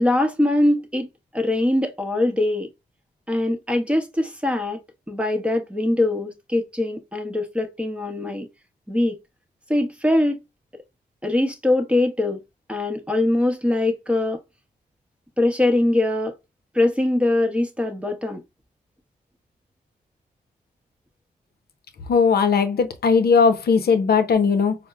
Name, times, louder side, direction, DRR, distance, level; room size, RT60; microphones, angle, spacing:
voice 1, 0.0-2.7 3.3-4.8 5.1-8.5 8.9-9.2 9.7-10.4 11.2-12.4 12.7-14.4 15.4-16.4 16.7-18.4, left 1 dB, 5° right, 0.9 m, -22 dB
voice 2, 22.1-24.7, left 5 dB, 70° left, 0.6 m, -18 dB
4.3 x 2.0 x 2.3 m
cardioid pair, 55°, 17 cm